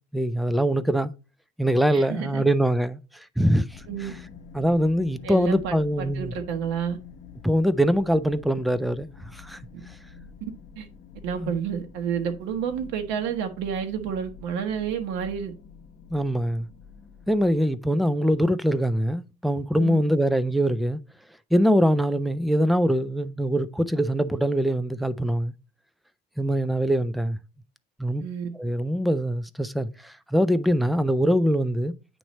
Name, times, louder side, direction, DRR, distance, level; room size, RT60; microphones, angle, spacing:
voice 1, 0.1-1.1 1.6-4.1 4.5-6.3 7.4-9.6 11.4-11.5 16.1-16.7 17.3-21.0 21.5-25.5 26.4-27.4 28.0-28.2 28.6-31.9, equal, ahead, 0.3 m, -23 dB
voice 2, 1.9-2.4 3.9-4.1 5.2-7.0 10.8-10.9 11.2-15.5 19.8-20.0 28.2-28.5, right 7 dB, 85° right, 1.1 m, -30 dB
sound 1, 3.7-17.6, left 6 dB, 40° left, 1.1 m, -46 dB
9.0 x 3.1 x 4.1 m
cardioid pair, 135°, 19 cm